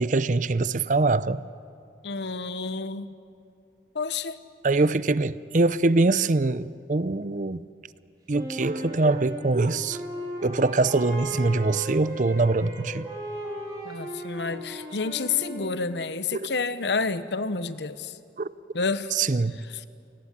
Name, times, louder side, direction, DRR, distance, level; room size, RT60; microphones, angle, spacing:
voice 1, 0.0-1.4 4.6-7.7 8.3-10.0 10.4-13.1 16.3-16.5 18.4-18.5 19.1-19.6, right 3 dB, 45° right, 0.6 m, -23 dB
voice 2, 2.0-3.1 3.9-4.4 13.8-18.2 18.7-19.1 19.7-19.8, left 4 dB, 75° left, 1.0 m, -29 dB
Wind instrument woodwind instrument, 8.3-16.3, equal, 20° right, 4.1 m, -37 dB
Wind instrument woodwind instrument 2, 10.9-15.8, right 2 dB, 90° right, 3.0 m, -50 dB
28.0 x 19.0 x 10.0 m
head